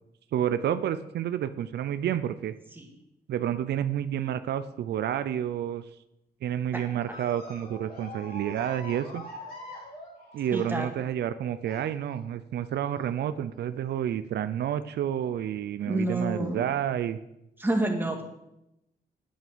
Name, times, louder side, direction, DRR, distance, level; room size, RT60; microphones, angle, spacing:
voice 1, 0.3-2.5 3.3-5.8 6.4-9.2 10.3-17.2, right 10 dB, 80° right, 12 dB, 0.6 m, -30 dB
sound 1, 7.1-11.1 11.6-12.2 13.2-13.6 14.0-14.1 15.4-15.5 16.3-16.4, left 1 dB, 60° left, 4.8 m, -44 dB
voice 2, 10.5-10.9 15.9-16.6 17.6-18.2, right 1 dB, 10° right, 2 dB, 2.1 m, -28 dB
9.3 x 8.8 x 6.9 m, 0.86 s
cardioid pair, 115°, 17 cm